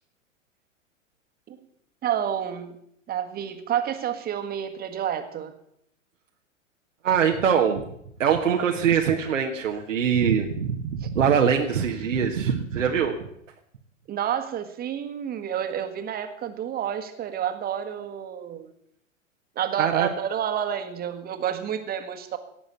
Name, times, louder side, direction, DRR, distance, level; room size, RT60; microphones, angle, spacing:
voice 1, 2.0-2.8 3.1-5.5 11.0-11.1 14.1-18.7 19.5-22.4, right 9 dB, 25° right, 8 dB, 1.7 m, -29 dB
voice 2, 7.0-7.8 8.2-13.3 19.8-20.1, right 7 dB, 70° right, 2 dB, 1.5 m, -23 dB
17.5 x 6.9 x 8.2 m, 0.74 s
figure-of-eight pair, 105°, 39 cm